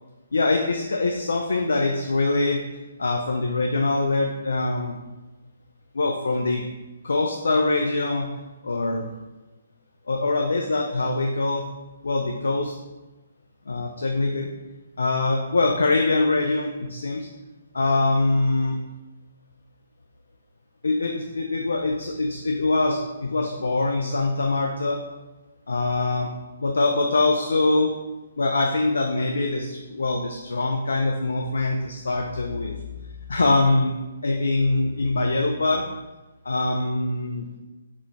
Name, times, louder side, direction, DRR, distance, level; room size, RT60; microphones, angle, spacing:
voice 1, 0.3-2.6 3.0-5.0 5.9-6.6 7.0-8.3 8.6-9.0 10.1-11.7 12.0-12.7 13.7-14.5 15.0-17.3 17.7-18.8 20.8-25.0 25.7-26.3 26.6-27.9 28.4-32.8 33.3-33.9 34.2-35.8 36.4-37.5, left 2 dB, 70° left, 1 dB, 0.3 m, -23 dB
3.6 x 2.3 x 3.5 m, 1.1 s
figure-of-eight pair, 135°, 0 cm